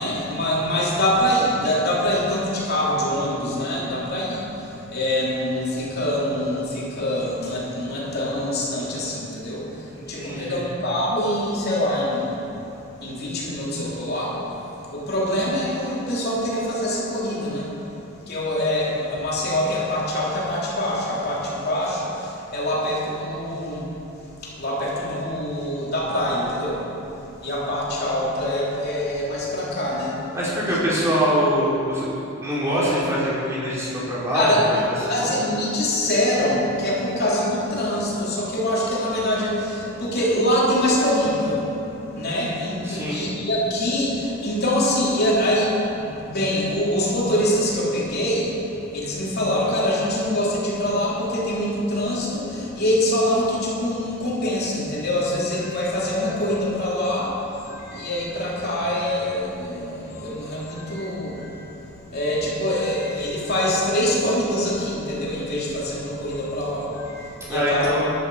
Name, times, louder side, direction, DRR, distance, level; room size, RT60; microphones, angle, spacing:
voice 1, 0.0-12.4 13.0-14.5 14.9-17.7 18.3-23.9 24.4-26.9 27.4-30.2 30.7-30.8 34.3-34.6 35.1-67.9, left 1 dB, 50° left, -5 dB, 3.1 m, -24 dB
voice 2, 9.9-10.6 30.3-32.1 32.4-34.5 35.1-35.3 42.8-43.2 67.5-68.0, equal, 15° right, -8 dB, 3.7 m, -23 dB
14.5 x 11.5 x 4.8 m, 2.9 s
head